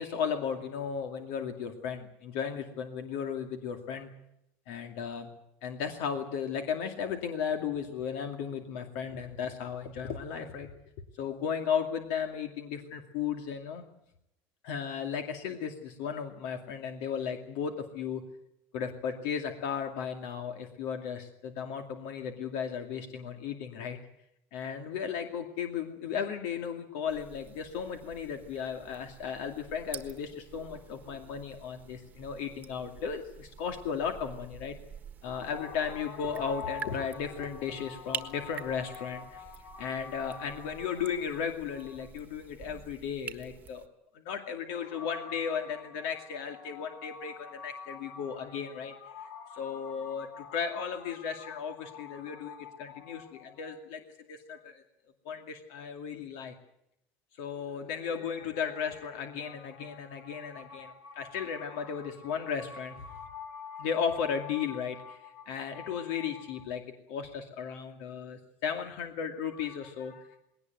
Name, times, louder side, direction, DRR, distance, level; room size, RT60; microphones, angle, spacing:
voice 1, 0.0-4.1 4.7-5.3 5.6-10.7 11.2-13.8 14.6-18.2 18.7-24.0 24.5-34.8 35.2-43.8 44.1-54.0 54.3-54.8 55.2-56.5 57.4-66.8 67.1-70.4, left 7 dB, 70° left, 5 dB, 2.4 m, -35 dB
sound 1, 27.1-43.9, right 7 dB, 25° right, 1.5 m, -47 dB
20.5 x 18.5 x 9.2 m, 0.79 s
cardioid pair, 155°, 7 cm